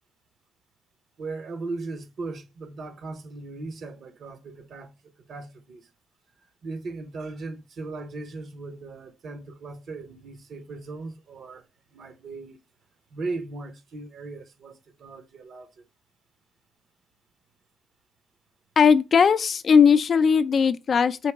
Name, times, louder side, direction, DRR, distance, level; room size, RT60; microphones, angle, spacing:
voice 1, 1.2-5.9 6.6-11.6 11.9-12.6 13.1-15.8, right 3 dB, 60° right, 0.9 m, -38 dB
voice 2, 18.8-21.3, left 6 dB, 50° left, 0.4 m, -18 dB
4.6 x 2.8 x 3.4 m
cardioid pair, 90°, 0 cm